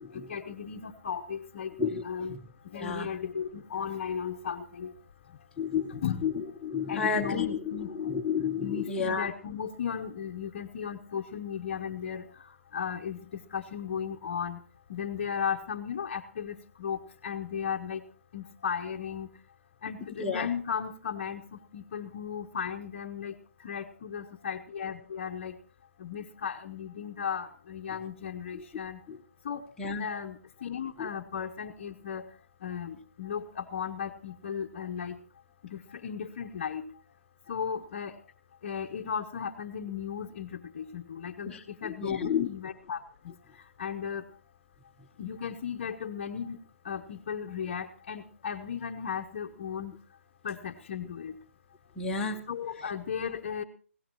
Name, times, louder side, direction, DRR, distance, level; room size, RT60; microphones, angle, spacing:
voice 1, 0.1-5.5 5.9-6.3 6.8-8.2 8.6-14.6 14.9-18.0 18.3-19.3 19.8-25.6 26.0-29.1 29.4-29.7 30.0-32.3 32.6-35.2 35.6-37.0 37.5-38.2 38.6-44.3 45.2-49.9 50.4-51.4 52.5-53.6, left 7 dB, 30° left, 0 dB, 0.9 m, -36 dB
voice 2, 5.6-6.3 6.6-7.6 7.9-9.3 20.2-20.5 29.1-29.2 29.8-30.1 31.0-31.1 41.5-41.6 41.8-42.5 52.0-52.4, left 6 dB, 5° left, -4 dB, 0.9 m, -31 dB
21.0 x 16.5 x 3.0 m, 0.41 s
hypercardioid pair, 165°, 7 cm